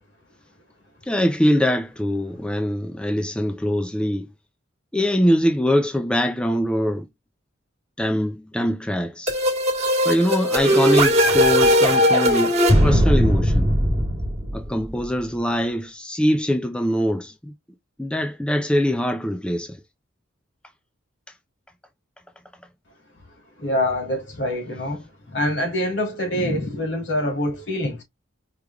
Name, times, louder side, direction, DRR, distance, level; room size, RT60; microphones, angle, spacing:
voice 1, 1.1-4.3 4.9-7.1 8.0-9.3 10.1-12.5 12.8-13.7 14.5-17.5 18.0-19.8, equal, 5° left, 0.4 m, -23 dB
sound 1, 9.3-14.9, equal, 35° right, 1.4 m, -18 dB
voice 2, 23.6-28.0, left 1 dB, 65° left, 2.3 m, -25 dB
4.9 x 3.2 x 2.3 m
head